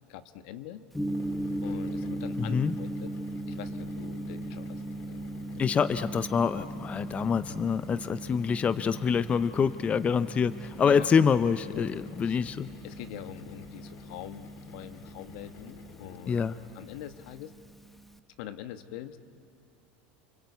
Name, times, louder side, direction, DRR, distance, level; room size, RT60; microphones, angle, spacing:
voice 1, 0.1-0.9 1.6-3.1 3.5-5.6 10.8-11.1 11.7-11.9 12.2-12.4 12.8-16.4 16.7-17.5 18.4-19.2, left 11 dB, 70° left, 9 dB, 1.3 m, -43 dB
Gong, 0.9-18.2, right 1 dB, 5° left, 0.9 m, -39 dB
sound 1, 1.0-17.4, left 6 dB, 50° left, 1.9 m, -50 dB
voice 2, 2.4-2.7 5.6-12.7 16.3-16.5, left 6 dB, 25° left, 14 dB, 0.5 m, -26 dB
29.5 x 22.0 x 8.3 m, 2.6 s
supercardioid pair, 110°, 5 cm